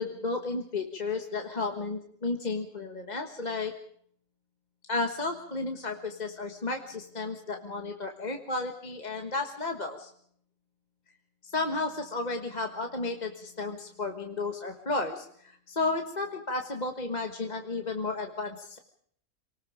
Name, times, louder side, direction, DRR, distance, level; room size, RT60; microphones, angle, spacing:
voice 1, 0.0-3.7 4.9-10.1 11.4-15.3 15.7-18.8, left 3 dB, 30° left, 4 dB, 1.5 m, -33 dB
27.0 x 19.5 x 5.0 m, 0.64 s
omnidirectional pair, 1.6 m